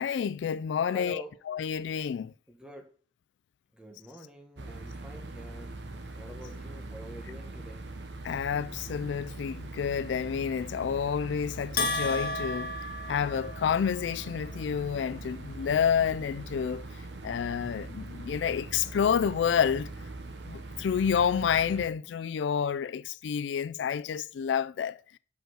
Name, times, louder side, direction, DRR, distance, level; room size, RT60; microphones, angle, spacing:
voice 1, 0.0-2.3 8.2-12.7 13.1-16.9 17.2-19.9 20.5-25.2, left 7 dB, 85° left, 0.3 m, -29 dB
voice 2, 0.9-1.3 2.5-2.9 3.7-5.8 6.2-7.8, equal, 5° right, 1.3 m, -46 dB
sound 1, 4.6-21.9, right 2 dB, 75° right, 1.0 m, -42 dB
Bell, 11.8-13.9, left 2 dB, 60° left, 0.9 m, -32 dB
6.2 x 5.3 x 6.4 m
head